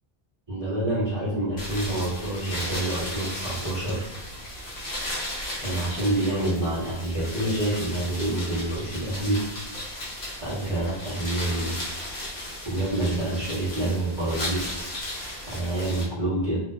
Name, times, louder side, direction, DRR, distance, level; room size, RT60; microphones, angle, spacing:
voice 1, 0.5-4.1 5.6-9.4 10.4-11.7 12.6-14.8 15.5-16.6, right 1 dB, 25° right, -11 dB, 1.1 m, -27 dB
sound 1, 1.6-16.0, left 1 dB, 65° left, 1.0 m, -35 dB
2.8 x 2.1 x 2.3 m, 1.0 s
omnidirectional pair, 1.1 m